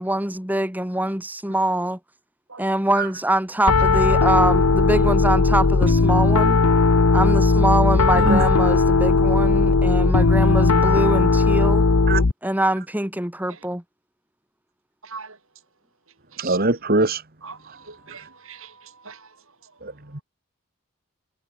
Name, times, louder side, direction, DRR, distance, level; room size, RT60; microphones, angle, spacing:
voice 1, 0.0-2.0 2.6-6.6 7.1-11.8 12.4-13.8, right 1 dB, 10° right, 2.6 m, -24 dB
Piano, 3.7-12.3, left 3 dB, 85° left, 0.9 m, -17 dB
voice 2, 8.2-8.5 12.1-12.2 16.4-17.2 19.8-20.2, right 2 dB, 45° right, 2.0 m, -22 dB
voice 3, 15.0-15.4 16.4-16.6 17.4-19.3, right 5 dB, 65° right, 7.4 m, -41 dB
head